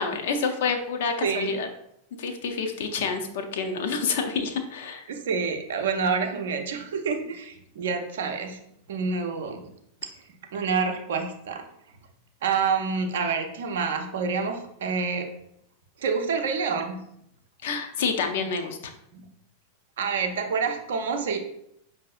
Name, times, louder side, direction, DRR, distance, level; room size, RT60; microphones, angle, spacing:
voice 1, 0.0-1.7 2.2-5.0 17.6-18.9, left 5 dB, 55° left, 5 dB, 0.5 m, -28 dB
voice 2, 1.2-1.6 5.1-8.6 8.9-9.7 10.5-11.6 12.4-15.3 16.0-17.0 18.4-18.5 19.1-19.3 20.0-21.4, right 5 dB, 60° right, 5 dB, 0.5 m, -27 dB
5.3 x 2.6 x 2.4 m, 0.76 s
figure-of-eight pair, 90°, 0 cm